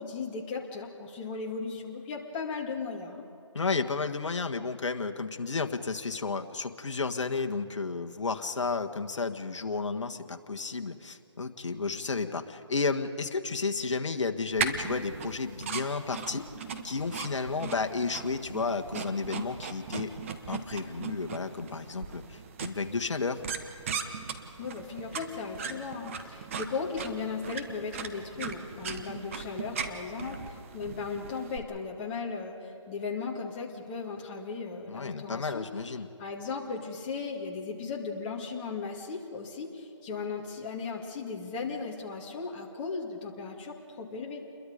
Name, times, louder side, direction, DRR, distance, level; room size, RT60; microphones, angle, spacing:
voice 1, 0.0-3.2 24.6-35.7 36.2-44.4, left 4 dB, 20° left, -1 dB, 2.3 m, -36 dB
voice 2, 3.5-16.5 16.8-20.1 20.5-23.4 34.9-36.1, left 4 dB, 65° left, 5 dB, 1.5 m, -32 dB
sound 1, 14.6-31.6, right 6 dB, 25° right, 1.1 m, -38 dB
29.0 x 22.0 x 5.2 m, 2.8 s
figure-of-eight pair, 160°, 16 cm